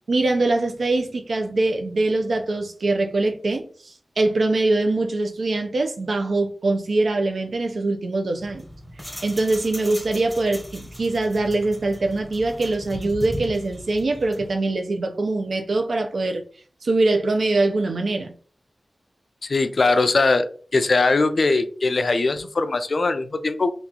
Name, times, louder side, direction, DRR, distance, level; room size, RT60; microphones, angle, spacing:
voice 1, 0.1-8.7 9.2-16.4 16.8-18.3, right 2 dB, 80° right, 0.5 m, -23 dB
sound 1, 8.4-14.5, equal, ahead, 0.8 m, -38 dB
voice 2, 19.4-23.7, left 3 dB, 60° left, 0.4 m, -21 dB
2.9 x 2.4 x 3.7 m
wide cardioid pair, 100°, 0 cm